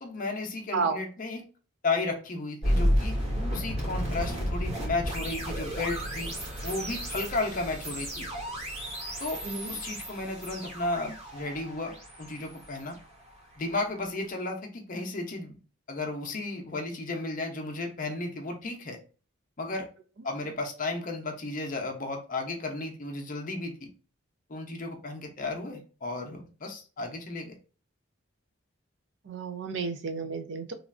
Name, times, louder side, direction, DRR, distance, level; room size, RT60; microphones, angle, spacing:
voice 1, 0.0-1.4 1.8-3.2 3.5-6.3 6.6-8.3 9.2-9.4 9.7-13.0 13.6-15.6 15.9-19.0 19.6-19.9 20.2-23.9 24.5-27.5, left 2 dB, 40° left, 2 dB, 0.6 m, -34 dB
sound 1, 2.6-13.6, equal, 30° right, 1.1 m, -32 dB
voice 2, 29.3-30.7, right 4 dB, 60° right, 6 dB, 0.5 m, -31 dB
3.0 x 2.4 x 2.4 m, 0.36 s
head